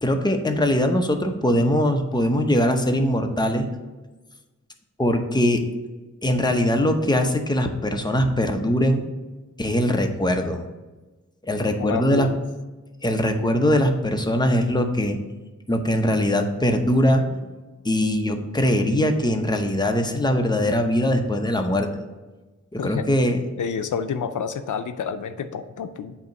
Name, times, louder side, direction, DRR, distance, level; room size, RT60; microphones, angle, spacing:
voice 1, 0.0-3.7 5.0-5.6 6.2-9.1 9.6-10.7 11.4-12.3 13.0-15.2 15.7-17.2 17.8-21.9 22.7-23.4, equal, 15° left, 4 dB, 0.7 m, -21 dB
voice 2, 11.8-12.4 22.8-23.1 23.6-26.2, left 6 dB, 85° left, 9 dB, 0.5 m, -29 dB
8.0 x 2.9 x 5.2 m, 1.2 s
wide cardioid pair, 60°, 30 cm